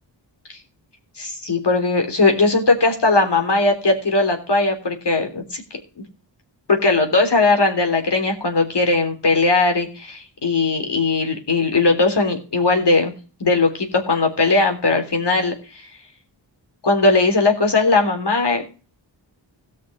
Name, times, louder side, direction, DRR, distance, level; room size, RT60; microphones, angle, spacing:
voice 1, 1.2-5.6 6.7-13.1 13.4-15.9 16.8-18.6, left 3 dB, 60° left, 4 dB, 3.6 m, -19 dB
17.5 x 6.2 x 5.0 m, 0.37 s
wide cardioid pair, 70°, 45 cm